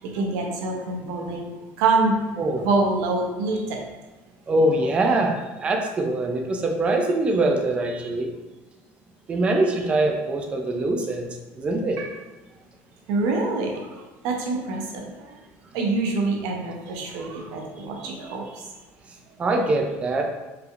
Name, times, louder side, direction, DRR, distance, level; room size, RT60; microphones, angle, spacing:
voice 1, 0.0-1.5 1.8-2.2 2.6-3.8 12.0-12.1 13.1-15.4 15.7-18.7, right 3 dB, 70° right, 1 dB, 0.8 m, -26 dB
voice 2, 4.5-8.3 9.3-11.3 11.6-12.0 19.4-20.2, right 2 dB, 20° right, 2 dB, 0.4 m, -23 dB
4.7 x 3.4 x 2.5 m, 1.1 s
cardioid pair, 165°, 6 cm